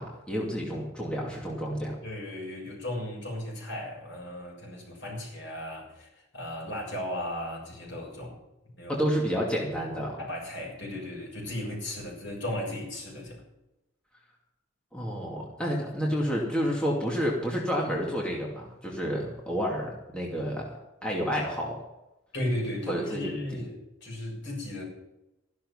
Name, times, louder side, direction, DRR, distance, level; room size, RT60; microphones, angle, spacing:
voice 1, 0.0-2.0 8.9-10.2 14.9-21.8 22.9-23.6, equal, 5° left, -3 dB, 2.5 m, -30 dB
voice 2, 2.0-8.4 8.8-9.0 10.2-13.4 22.3-24.8, left 1 dB, 65° left, -2 dB, 7.0 m, -36 dB
14.0 x 11.5 x 5.7 m, 0.94 s
head